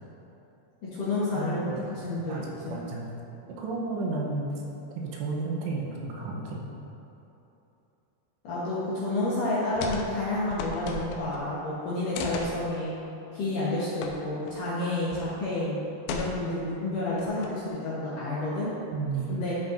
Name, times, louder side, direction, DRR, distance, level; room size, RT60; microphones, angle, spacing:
voice 1, 0.8-2.8 8.4-12.9 13.3-15.8 16.1-18.7 19.3-19.5, left 2 dB, 70° left, -9 dB, 2.1 m, -30 dB
voice 2, 1.4-1.8 2.3-3.1 3.5-4.5 5.0-6.6 18.9-19.4, right 3 dB, 80° right, -2 dB, 2.9 m, -32 dB
sound 1, 9.8-10.1 10.3-11.4 12.1-12.6 14.0-14.1 14.5-14.6 15.1-15.4 16.1-16.6 17.2-17.7, left 4 dB, 85° left, 2.9 m, -35 dB
13.0 x 5.6 x 2.6 m, 3.0 s
omnidirectional pair, 5.1 m